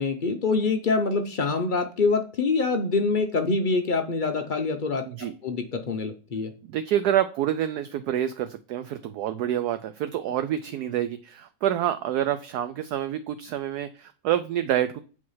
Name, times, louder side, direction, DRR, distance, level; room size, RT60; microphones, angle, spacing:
voice 1, 0.0-6.5, left 4 dB, 85° left, 6 dB, 0.4 m, -25 dB
voice 2, 6.7-15.0, right 11 dB, 70° right, 11 dB, 1.0 m, -27 dB
8.3 x 4.8 x 5.6 m, 0.36 s
omnidirectional pair, 2.0 m